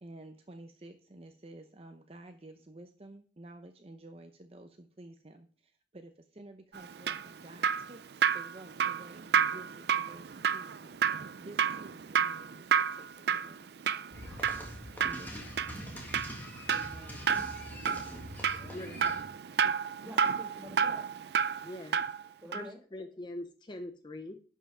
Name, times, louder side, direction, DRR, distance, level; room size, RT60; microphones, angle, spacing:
voice 1, 0.0-11.0 11.4-13.7 15.0-15.6, right 2 dB, 30° right, 6 dB, 0.7 m, -51 dB
Drip, 6.8-22.2 22.5-22.7, right 7 dB, 60° right, 0.4 m, -31 dB
sound 1, 14.1-19.2, equal, 10° left, 1.9 m, -44 dB
voice 2, 16.7-17.3 20.0-21.1 22.4-22.8, equal, 10° right, 2 dB, 2.0 m, -48 dB
voice 3, 18.7-19.3 21.6-22.0 22.5-24.3, left 1 dB, 25° left, 8 dB, 0.6 m, -43 dB
11.0 x 5.6 x 4.9 m, 0.42 s
head